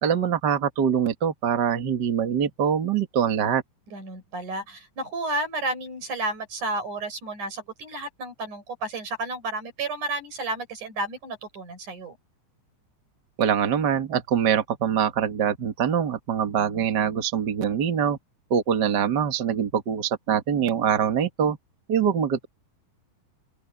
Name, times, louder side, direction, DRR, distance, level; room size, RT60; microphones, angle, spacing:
voice 1, 0.0-3.6 13.4-18.2 18.5-21.6 21.9-22.5, right 8 dB, 40° right, 1.8 m, -24 dB
voice 2, 3.9-12.2, right 2 dB, 70° right, 7.3 m, -32 dB
open air
omnidirectional pair, 3.6 m